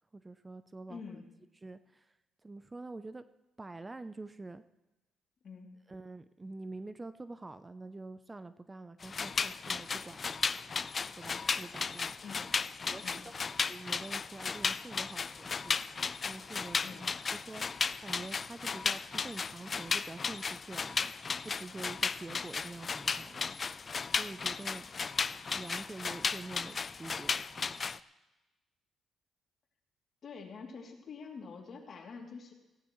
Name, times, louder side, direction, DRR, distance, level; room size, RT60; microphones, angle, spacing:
voice 1, 0.1-1.2 1.6-2.1 2.4-3.2 3.6-4.6 5.9-10.5 11.2-12.1 12.9-15.8 16.2-17.0 17.5-17.6 18.0-21.1 21.4-23.8 24.2-24.9 25.5-27.4, right 2 dB, 20° right, 12 dB, 0.6 m, -46 dB
voice 2, 0.9-1.3 5.4-5.7 12.2-12.5 13.0-13.2 16.8-17.1 30.2-32.5, left 5 dB, 55° left, 0 dB, 2.9 m, -46 dB
sound 1, 9.0-28.0, left 5 dB, 40° left, 0.4 m, -35 dB
18.0 x 16.0 x 3.2 m, 1.0 s
cardioid pair, 90°, 0 cm